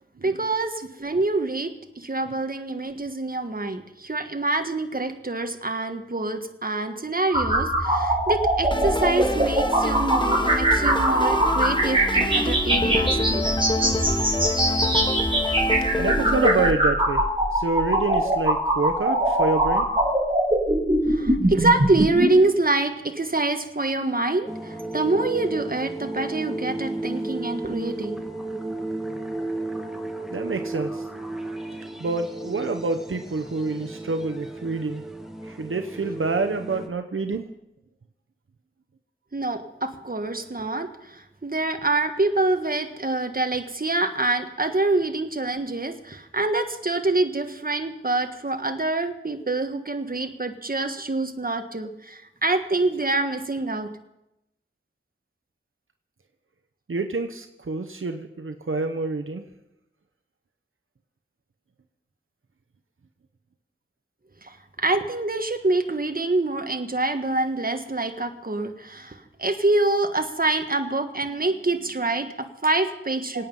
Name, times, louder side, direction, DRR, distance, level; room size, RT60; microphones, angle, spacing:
voice 1, 0.2-13.5 21.1-28.3 39.3-53.9 64.4-73.5, right 2 dB, 45° right, 6 dB, 1.5 m, -26 dB
sound 1, 7.3-22.3, right 1 dB, 25° right, 4.9 m, -22 dB
sound 2, 8.7-16.7, left 2 dB, 25° left, 1.6 m, -27 dB
voice 2, 16.0-17.2 17.5-19.9 30.3-31.0 32.0-35.0 35.4-37.4 56.9-59.4 73.3-73.5, right 3 dB, 80° right, 5 dB, 0.9 m, -27 dB
sound 3, 24.5-36.9, right 2 dB, ahead, 1.7 m, -33 dB
26.0 x 9.2 x 5.5 m, 0.87 s
wide cardioid pair, 45°, 21 cm